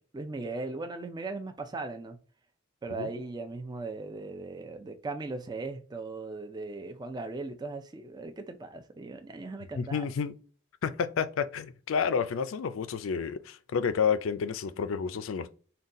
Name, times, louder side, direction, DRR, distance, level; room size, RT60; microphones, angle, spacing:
voice 1, 0.1-2.2 2.8-10.1, right 3 dB, 20° right, 0.4 m, -38 dB
voice 2, 9.8-10.4 10.8-15.5, left 6 dB, 80° left, 0.4 m, -30 dB
4.0 x 2.2 x 3.6 m
head